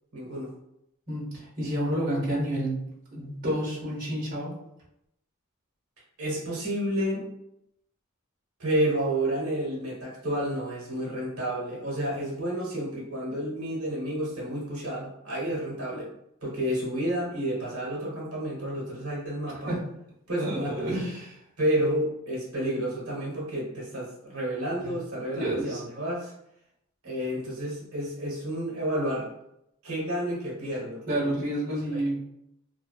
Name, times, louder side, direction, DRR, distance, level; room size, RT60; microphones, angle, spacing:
voice 1, 0.1-0.5 6.2-7.3 8.6-16.1 16.4-19.7 20.3-20.9 21.6-26.3 27.0-29.3 29.8-31.0 31.7-32.0, right 1 dB, 80° right, -4 dB, 1.0 m, -30 dB
voice 2, 1.1-4.5 19.7-19.8 20.4-21.4 24.8-24.9 25.3-25.8 31.1-32.3, right 1 dB, 40° right, -5 dB, 0.9 m, -30 dB
2.5 x 2.2 x 2.2 m, 0.79 s
head